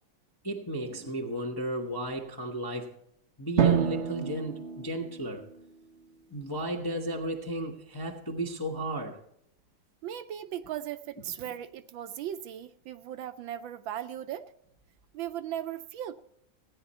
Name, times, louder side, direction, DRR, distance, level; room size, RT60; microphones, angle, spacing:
voice 1, 0.4-3.0 3.4-5.5 6.3-9.2, right 1 dB, 20° left, 0.5 m, -34 dB
Drum, 3.6-6.1, right 9 dB, 60° right, 0.7 m, -29 dB
voice 2, 10.0-14.5 15.1-16.2, right 11 dB, 75° right, 1.3 m, -37 dB
16.5 x 9.6 x 4.2 m
omnidirectional pair, 2.3 m